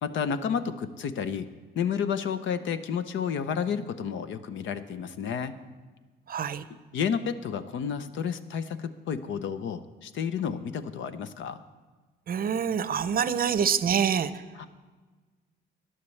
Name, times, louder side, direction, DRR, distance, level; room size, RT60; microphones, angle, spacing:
voice 1, 0.0-5.6 6.9-11.6 14.5-14.7, left 7 dB, 75° left, 11 dB, 0.7 m, -31 dB
voice 2, 6.3-6.6 12.3-14.3, right 7 dB, 50° right, 14 dB, 0.6 m, -26 dB
18.0 x 11.0 x 3.3 m, 1.3 s
cardioid pair, 90°, 20 cm